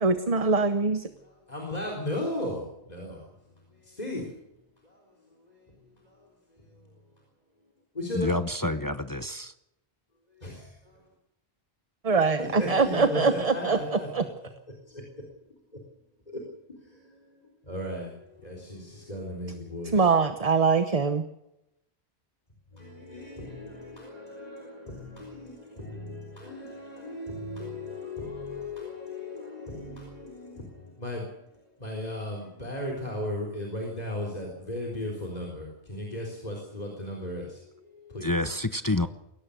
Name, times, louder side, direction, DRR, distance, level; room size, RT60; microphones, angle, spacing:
voice 1, 0.0-1.1 12.0-13.8 14.1-14.2 19.9-21.2, right 4 dB, 35° right, 9 dB, 1.0 m, -23 dB
voice 2, 1.5-2.6 2.9-3.1 4.0-4.2 8.0-8.3 10.4-10.5 12.4-14.1 17.7-18.1 18.4-18.8 19.1-19.9 23.1-24.6 25.1-25.5 25.8-26.2 26.4-30.1 31.0-31.2 31.8-37.4 38.1-38.3, left 1 dB, 40° left, 0 dB, 4.2 m, -35 dB
voice 3, 8.1-9.5 38.2-39.1, left 2 dB, 20° left, 10 dB, 0.8 m, -28 dB
22.0 x 17.5 x 6.7 m, 0.87 s
omnidirectional pair, 1.1 m